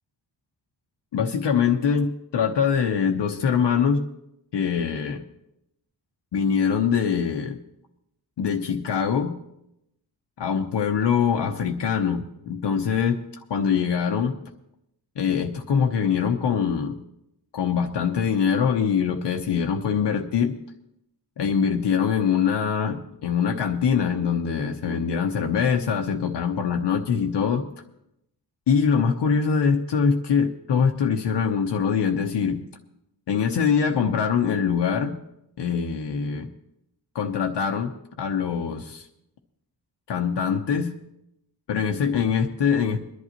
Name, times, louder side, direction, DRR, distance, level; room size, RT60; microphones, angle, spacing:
voice 1, 1.1-4.0 4.5-5.2 6.3-7.6 8.4-9.3 10.4-13.2 13.5-14.4 15.2-17.0 17.5-20.6 21.4-27.7 28.7-32.6 33.3-35.1 35.6-36.5 37.1-37.9 38.2-39.1 40.1-40.9 41.7-43.0, left 6 dB, 75° left, 3 dB, 0.9 m, -23 dB
22.5 x 11.0 x 3.0 m, 0.82 s
wide cardioid pair, 175°, 43 cm